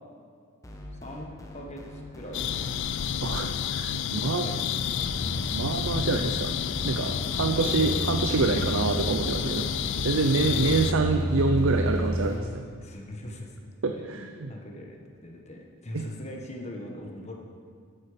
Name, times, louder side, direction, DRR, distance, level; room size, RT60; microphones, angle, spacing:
sound 1, 0.6-3.9 4.8-9.9 10.4-12.7, equal, 15° left, 1.0 m, -42 dB
voice 1, 1.0-2.6 4.1-5.2 7.0-8.1 10.3-11.3 12.8-17.3, left 1 dB, 30° left, 1 dB, 1.3 m, -42 dB
sound 2, 2.3-10.9, left 9 dB, 55° left, 0.3 m, -30 dB
voice 2, 3.2-4.4 5.5-6.5 6.8-12.7 13.8-14.5 15.9-16.1, right 3 dB, 65° right, 5 dB, 0.6 m, -27 dB
sound 3, 5.0-12.3, right 1 dB, 25° right, 1.0 m, -32 dB
13.0 x 8.4 x 5.1 m, 2.2 s
head